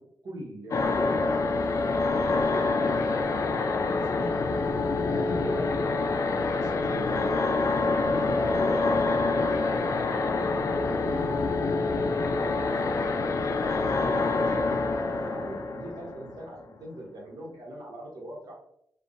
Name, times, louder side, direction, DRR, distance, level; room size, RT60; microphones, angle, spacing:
voice 1, 0.2-1.5 2.4-4.6 5.1-7.5 7.8-10.2 10.9-13.0 13.9-14.8 15.2-18.6, right 1 dB, 75° right, -3 dB, 1.0 m, -41 dB
sound 1, 0.7-16.6, left 3 dB, 55° left, 0.4 m, -26 dB
3.2 x 2.1 x 2.6 m, 0.74 s
cardioid pair, 60°, 6 cm